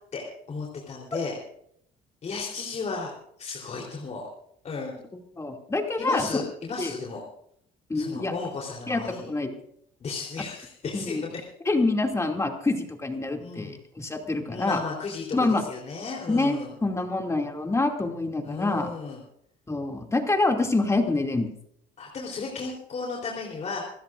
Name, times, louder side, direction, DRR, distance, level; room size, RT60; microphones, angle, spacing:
voice 1, 0.1-1.4 2.2-4.2 4.6-5.0 6.0-7.2 7.9-9.3 10.0-11.4 13.4-13.8 14.5-16.7 18.4-19.2 22.0-23.9, left 4 dB, 40° left, -2 dB, 3.8 m, -34 dB
voice 2, 5.4-6.3 6.8-6.9 7.9-8.3 8.9-9.5 10.9-11.2 11.7-14.8 15.3-15.6 16.3-18.9 19.7-21.5, left 2 dB, 15° left, 3 dB, 2.6 m, -26 dB
27.5 x 15.5 x 2.6 m, 0.70 s
cardioid pair, 110°, 17 cm